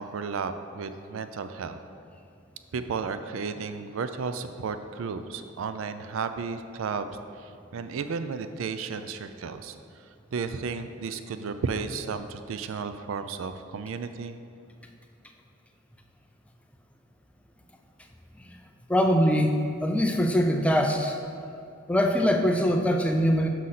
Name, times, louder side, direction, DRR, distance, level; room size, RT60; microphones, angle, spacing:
voice 1, 0.0-1.8 2.7-7.1 7.4-9.8 10.3-14.4, right 5 dB, 80° right, 10 dB, 0.4 m, -33 dB
voice 2, 18.9-19.5 19.8-21.2 21.9-23.5, equal, 5° left, 3 dB, 0.4 m, -22 dB
6.3 x 4.0 x 5.7 m, 2.4 s
head